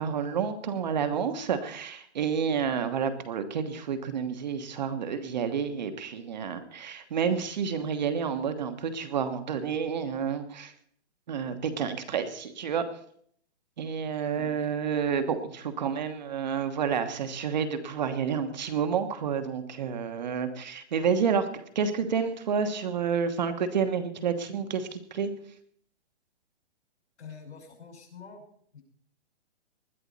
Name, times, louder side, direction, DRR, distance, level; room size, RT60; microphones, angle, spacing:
voice 1, 0.0-10.7 11.3-12.8 13.8-25.3, right 6 dB, 40° right, 9 dB, 1.3 m, -29 dB
voice 2, 14.3-14.7 17.2-17.3 27.2-28.4 28.7-28.8, left 6 dB, 75° left, 3 dB, 5.9 m, -46 dB
20.0 x 12.0 x 4.1 m, 0.63 s
hypercardioid pair, 175°, 34 cm